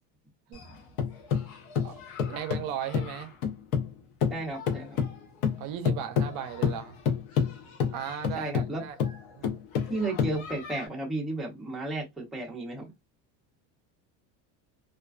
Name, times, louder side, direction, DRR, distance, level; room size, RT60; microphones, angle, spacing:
sound 1, 0.5-3.9 4.2-10.9, left 7 dB, 65° left, 0.8 m, -29 dB
voice 1, 1.8-3.3 5.6-6.9 7.9-8.9 9.4-9.6, right 10 dB, 60° right, 0.5 m, -37 dB
voice 2, 4.3-5.0 8.4-8.8 9.9-12.9, right 2 dB, ahead, 0.6 m, -33 dB
2.4 x 2.2 x 2.3 m
cardioid pair, 145°, 39 cm